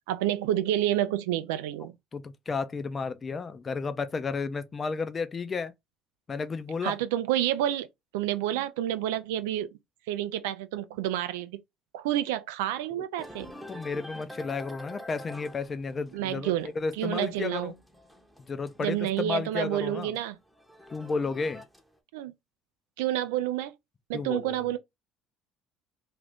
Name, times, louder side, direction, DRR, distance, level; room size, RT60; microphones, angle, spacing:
voice 1, 0.1-1.9 6.8-7.9 8.1-9.7 10.1-11.6 11.9-13.5 16.1-17.7 18.8-20.4 22.1-22.3 23.0-23.7 24.1-24.8, right 12 dB, 80° right, 0.3 m, -29 dB
voice 2, 2.1-5.7 6.3-7.0 13.0-13.1 13.7-17.7 18.5-20.1 20.9-21.6 24.1-24.5, left 4 dB, 30° left, 0.5 m, -32 dB
sound 1, 13.2-19.4 19.8-22.0, equal, ahead, 0.8 m, -47 dB
2.5 x 2.4 x 3.3 m
hypercardioid pair, 70°, 0 cm